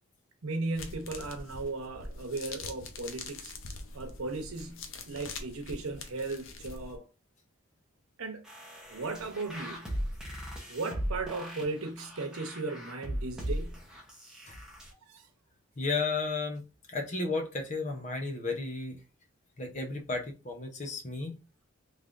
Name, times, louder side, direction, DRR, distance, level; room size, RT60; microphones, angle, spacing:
voice 1, 0.4-3.5 3.9-7.0 8.2-8.4 8.9-9.9 10.7-13.8 15.1-15.2, right 3 dB, 85° right, 0.9 m, -36 dB
sound 1, 0.7-7.0, left 3 dB, 65° left, 0.6 m, -44 dB
sound 2, 8.5-14.9, equal, 5° right, 0.8 m, -38 dB
voice 2, 15.8-16.6 16.9-19.0 19.6-21.4, left 3 dB, 35° left, 0.7 m, -33 dB
3.4 x 3.3 x 2.6 m
head